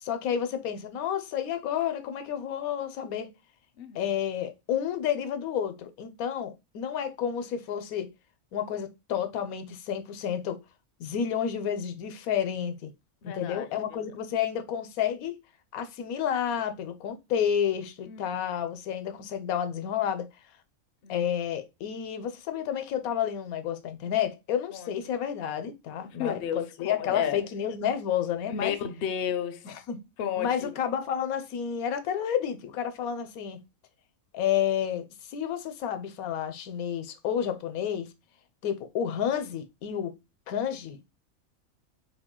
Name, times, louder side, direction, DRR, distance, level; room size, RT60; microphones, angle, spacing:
voice 1, 0.0-3.3 3.9-8.1 8.5-10.6 11.0-12.9 13.2-15.4 15.7-20.3 21.1-28.7 29.6-30.0 30.4-33.6 34.3-38.1 38.6-40.1 40.5-41.0, left 9 dB, 85° left, 1.1 m, -30 dB
voice 2, 3.8-4.1 13.2-14.0 18.1-18.3 21.0-21.2 24.7-25.2 26.1-27.4 28.5-29.7 30.2-30.7, left 8 dB, 60° left, 0.6 m, -33 dB
3.8 x 2.2 x 3.6 m
omnidirectional pair, 1.5 m